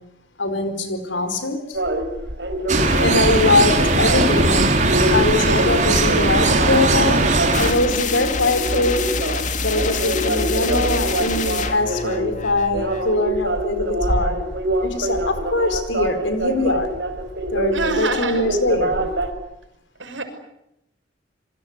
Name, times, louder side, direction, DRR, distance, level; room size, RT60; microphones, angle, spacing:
voice 1, 0.4-1.8 3.0-7.3 7.6-9.1 9.6-14.4 14.8-16.9 17.5-19.0, left 2 dB, 80° left, 9 dB, 4.6 m, -22 dB
sound 1, 1.7-19.3, right 1 dB, 60° right, 5.2 m, -25 dB
sound 2, 2.7-7.7, right 2 dB, 40° right, 4.4 m, -18 dB
voice 2, 2.7-3.2 9.9-10.2 17.7-18.4 20.0-20.2, right 3 dB, 85° right, 6 dB, 6.5 m, -27 dB
sound 3, 7.5-13.2, left 3 dB, 40° left, 2.4 m, -26 dB
27.5 x 24.0 x 8.1 m, 0.84 s
head